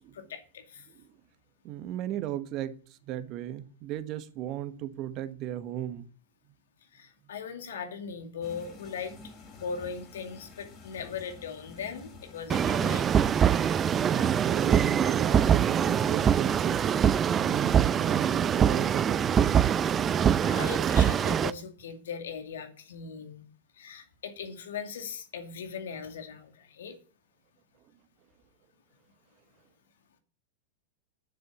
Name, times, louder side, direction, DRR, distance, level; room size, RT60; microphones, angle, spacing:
voice 1, 0.1-0.9 6.9-13.2 20.4-23.4 23.7-27.0, left 6 dB, 70° left, 2.3 m, -39 dB
voice 2, 1.6-2.8 3.1-6.1 14.0-19.9, right 12 dB, 40° right, 1.3 m, -35 dB
sound 1, 8.4-15.9, left 3 dB, 40° left, 4.3 m, -50 dB
sound 2, 12.5-21.5, right 8 dB, 25° right, 0.5 m, -24 dB
9.1 x 7.7 x 8.2 m
figure-of-eight pair, 95°, 0 cm